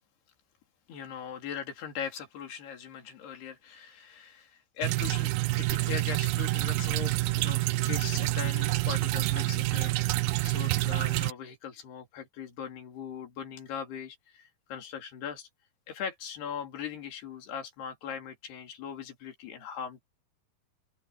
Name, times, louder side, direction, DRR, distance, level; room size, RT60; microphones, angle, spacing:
voice 1, 0.9-10.1 10.4-15.5 15.9-20.0, left 7 dB, 90° left, 5.0 m, -40 dB
sound 1, 4.8-11.3, right 21 dB, 80° right, 2.4 m, -28 dB
open air
omnidirectional pair, 4.5 m